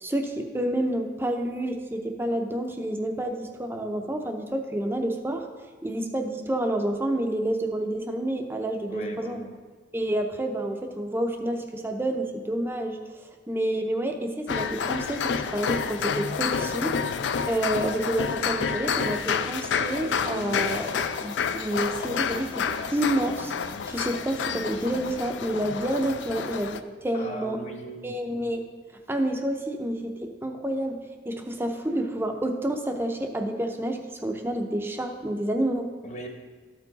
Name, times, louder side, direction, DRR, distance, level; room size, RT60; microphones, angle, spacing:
voice 1, 0.0-5.5 5.8-9.4 9.9-16.9 17.4-23.5 23.9-27.6 28.0-28.6 29.1-35.9, right 1 dB, 10° right, 4 dB, 0.5 m, -29 dB
voice 2, 8.9-9.5 27.1-28.2 36.0-36.3, right 1 dB, 35° left, 2 dB, 1.0 m, -38 dB
sound 1, 14.5-26.8, left 6 dB, 75° left, 0.4 m, -29 dB
13.5 x 4.5 x 4.0 m, 1.4 s
head